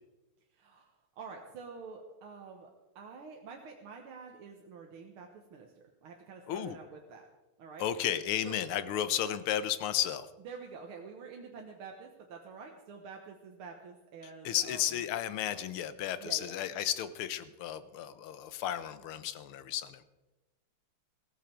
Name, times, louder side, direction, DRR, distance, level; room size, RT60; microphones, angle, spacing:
voice 1, 0.5-7.3 7.6-7.9 8.4-8.5 10.4-14.8 16.2-16.6, right 5 dB, 75° right, 2 dB, 2.0 m, -48 dB
voice 2, 6.5-6.8 7.8-10.3 14.4-20.0, left 11 dB, 80° left, 14 dB, 1.7 m, -33 dB
16.0 x 14.0 x 4.5 m, 1.1 s
omnidirectional pair, 2.4 m